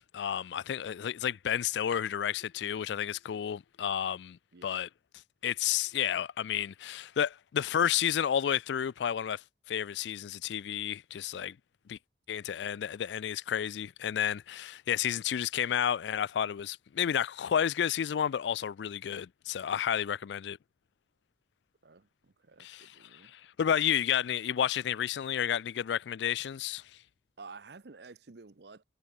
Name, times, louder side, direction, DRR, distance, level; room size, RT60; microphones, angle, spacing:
voice 1, 0.0-4.9 5.4-11.6 11.9-12.0 12.3-20.6 22.6-26.8, left 9 dB, 75° left, 0.3 m, -31 dB
voice 2, 4.5-4.8 21.8-23.3 23.7-23.8 27.4-28.8, right 4 dB, 65° right, 0.8 m, -51 dB
head